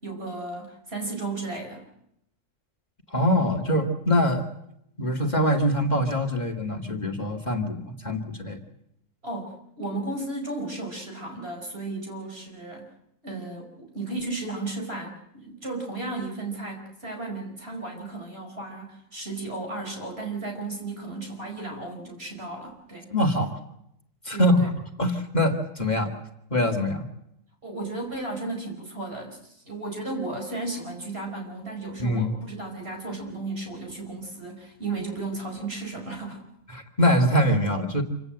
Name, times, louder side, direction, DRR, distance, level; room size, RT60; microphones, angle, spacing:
voice 1, 0.0-1.9 9.2-12.9 13.2-23.1 24.3-24.7 27.6-36.4, right 2 dB, 50° right, 2 dB, 5.1 m, -34 dB
voice 2, 3.1-4.5 5.0-8.6 23.1-23.6 24.2-24.6 25.0-26.1 26.5-27.0 32.0-32.3 36.7-38.0, equal, 35° left, 5 dB, 2.2 m, -23 dB
27.5 x 17.5 x 7.8 m, 0.79 s
omnidirectional pair, 1.3 m